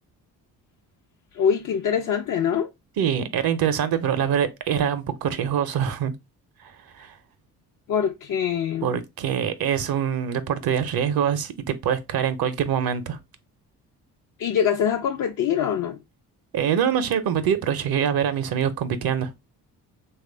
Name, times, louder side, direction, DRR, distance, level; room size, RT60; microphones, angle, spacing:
voice 1, 1.3-2.7 7.9-9.0 14.4-16.0, left 8 dB, 40° left, 0.5 m, -24 dB
voice 2, 3.0-6.1 6.6-7.2 8.8-13.2 16.5-19.3, right 8 dB, 50° right, 0.6 m, -24 dB
3.1 x 2.4 x 3.7 m
hypercardioid pair, 45°, 48 cm